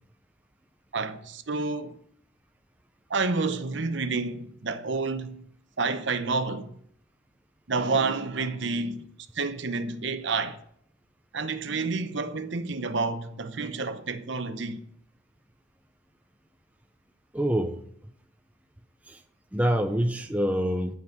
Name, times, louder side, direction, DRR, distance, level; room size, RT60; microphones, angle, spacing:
voice 1, 0.9-2.0 3.1-5.4 5.8-6.7 7.7-9.1 9.3-10.6 11.3-14.8, right 4 dB, 65° right, 0.8 m, -29 dB
voice 2, 17.3-17.8 19.1-19.2 19.5-20.9, equal, 5° right, 0.5 m, -26 dB
11.0 x 5.3 x 8.0 m
head